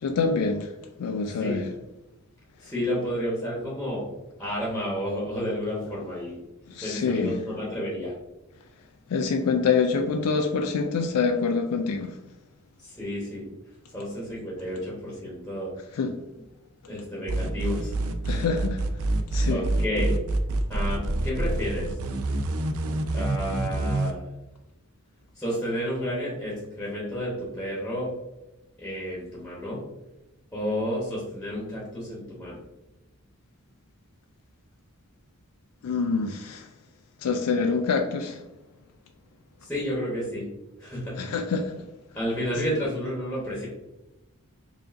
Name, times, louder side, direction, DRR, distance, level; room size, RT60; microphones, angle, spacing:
voice 1, 0.0-0.7 1.0-1.7 6.7-7.4 9.1-12.1 15.9-16.1 18.3-18.8 19.3-19.7 35.8-36.7 37.2-38.4 41.2-41.7, left 5 dB, 85° left, 4 dB, 0.4 m, -26 dB
voice 2, 2.6-4.1 4.4-6.4 6.8-8.1 12.8-13.5 13.9-15.7 16.9-17.9 19.5-20.2 20.7-22.0 23.1-24.2 25.3-28.1 28.8-29.8 30.5-32.6 39.6-40.4 40.8-41.3 42.1-43.7, equal, 5° left, -6 dB, 1.0 m, -31 dB
sound 1, 17.3-24.1, right 2 dB, 70° right, 0.4 m, -26 dB
4.8 x 2.6 x 2.5 m, 0.99 s
head